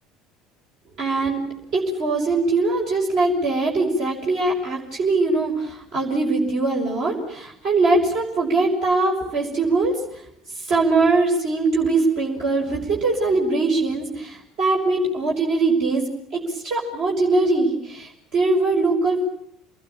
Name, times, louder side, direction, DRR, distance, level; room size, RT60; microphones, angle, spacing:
voice 1, 1.0-1.4 1.7-10.2 10.6-19.2, right 3 dB, 55° right, -1 dB, 6.3 m, -22 dB
28.5 x 20.5 x 8.9 m, 0.73 s
figure-of-eight pair, 65°, 0 cm